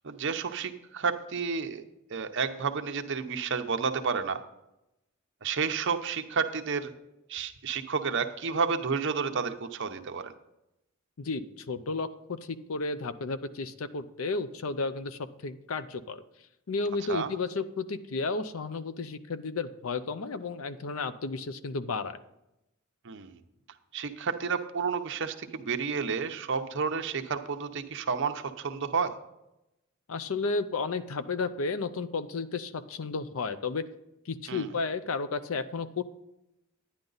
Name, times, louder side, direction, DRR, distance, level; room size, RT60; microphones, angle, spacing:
voice 1, 0.0-1.8 2.1-4.4 5.4-6.9 7.3-10.3 17.1-17.3 23.0-23.4 23.9-29.2 34.5-34.7, right 5 dB, 60° right, 6 dB, 0.8 m, -31 dB
voice 2, 11.2-16.2 16.7-22.2 30.1-33.8 34.3-36.0, left 4 dB, 80° left, 12 dB, 0.6 m, -33 dB
10.5 x 10.0 x 4.0 m, 0.89 s
head